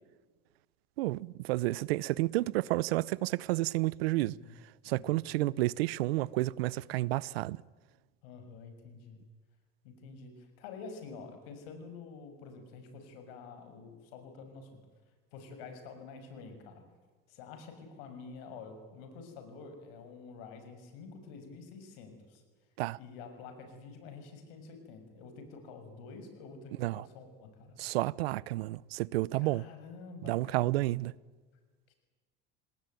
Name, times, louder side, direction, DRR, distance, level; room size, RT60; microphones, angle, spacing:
voice 1, 1.0-4.4 4.8-7.6 22.8-23.0 26.8-27.0 27.8-29.6 30.2-31.1, right 18 dB, 90° right, 0.7 m, -31 dB
voice 2, 4.2-4.6 4.8-5.0 8.2-9.2 9.8-14.8 15.3-16.8 17.3-22.4 23.0-27.8 29.4-30.9 31.9-32.0, left 4 dB, 80° left, 6.5 m, -48 dB
28.5 x 19.0 x 9.4 m
supercardioid pair, 105°, 30 cm